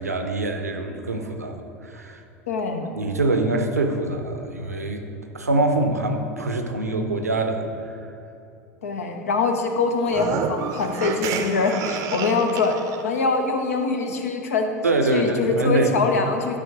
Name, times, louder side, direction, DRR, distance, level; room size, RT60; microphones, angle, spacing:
voice 1, 0.0-1.6 1.8-2.2 2.9-5.0 5.3-8.0 14.8-16.0, right 2 dB, 80° right, 5 dB, 0.7 m, -24 dB
voice 2, 2.5-2.9 8.8-12.8 13.0-14.7 15.1-16.6, left 4 dB, 70° left, 4 dB, 0.9 m, -23 dB
sound 1, 10.0-13.0, right 6 dB, 45° right, 0.6 m, -29 dB
12.5 x 5.0 x 3.8 m, 2.7 s
figure-of-eight pair, 75°, 8 cm